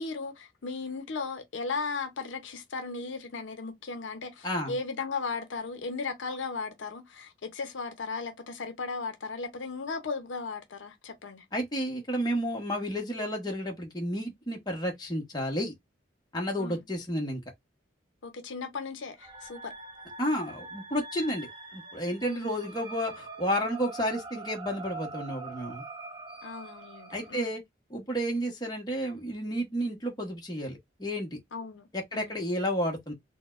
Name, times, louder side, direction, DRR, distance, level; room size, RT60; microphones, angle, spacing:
voice 1, 0.0-11.4 16.6-16.8 18.2-19.7 22.3-22.5 26.4-27.5 31.5-31.9 32.1-32.4, left 4 dB, 80° left, 0.6 m, -36 dB
voice 2, 4.4-4.8 11.5-15.7 16.3-17.4 20.2-25.8 27.1-27.6 27.9-31.4 31.9-33.1, equal, 20° left, 0.9 m, -31 dB
sound 1, 19.2-27.3, right 3 dB, 25° right, 0.5 m, -44 dB
4.0 x 2.1 x 2.4 m
head